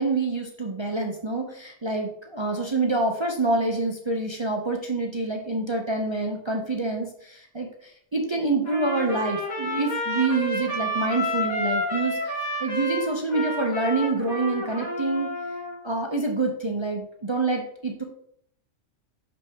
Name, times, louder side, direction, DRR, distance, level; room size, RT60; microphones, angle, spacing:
voice 1, 0.0-15.3 15.8-18.0, right 3 dB, 30° right, 2 dB, 0.5 m, -27 dB
Trumpet, 8.6-15.7, equal, 90° left, 2.7 m, -30 dB
6.2 x 5.7 x 3.5 m, 0.69 s
omnidirectional pair, 1.4 m